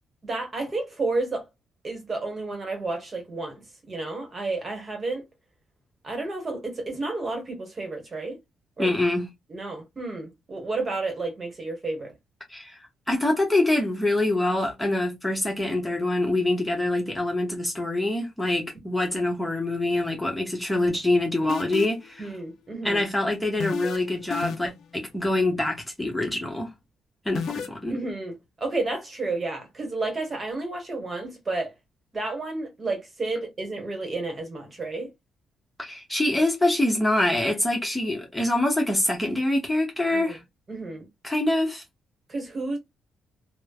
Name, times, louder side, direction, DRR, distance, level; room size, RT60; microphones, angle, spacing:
voice 1, 0.2-1.4 1.8-5.2 6.0-8.4 8.8-8.9 9.5-12.1 22.2-23.0 27.9-31.7 32.1-35.1 40.1-40.4 40.7-41.1 42.3-42.8, right 3 dB, 35° right, 1.3 m, -31 dB
voice 2, 8.8-9.3 12.5-12.8 13.1-22.3 22.8-26.7 27.2-28.0 35.8-40.4 41.2-41.8, left 1 dB, 10° left, 1.0 m, -25 dB
sound 1, 21.5-22.1 23.6-24.0 24.3-24.8 27.4-27.7, left 8 dB, 70° left, 0.5 m, -30 dB
3.1 x 2.1 x 2.3 m
cardioid pair, 90°, 0 cm